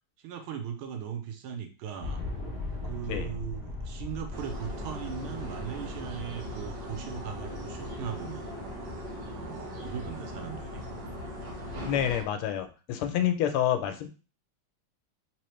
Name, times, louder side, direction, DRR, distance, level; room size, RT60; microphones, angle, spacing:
voice 1, 0.2-2.2 2.8-8.5 9.3-10.8 13.2-13.3, right 8 dB, 80° right, 6 dB, 1.5 m, -39 dB
sound 1, 2.0-9.4, left 2 dB, 35° right, 1.4 m, -40 dB
sound 2, 4.3-12.2, equal, 60° right, 1.8 m, -40 dB
voice 2, 11.9-14.1, left 10 dB, 85° left, 8 dB, 1.5 m, -28 dB
3.7 x 2.9 x 3.1 m, 0.34 s
omnidirectional pair, 2.4 m